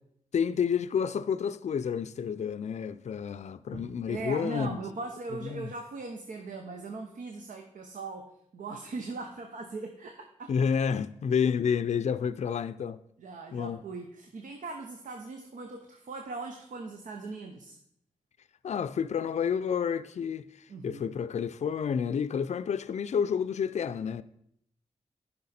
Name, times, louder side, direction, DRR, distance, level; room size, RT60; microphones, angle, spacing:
voice 1, 0.3-4.8 5.4-5.7 10.5-13.0 13.5-13.8 18.6-24.2, left 7 dB, 60° left, 0.4 m, -30 dB
voice 2, 3.7-10.5 13.2-17.8 20.7-21.2, right 3 dB, 85° right, 0.8 m, -40 dB
10.5 x 5.7 x 4.2 m
cardioid pair, 60°, 13 cm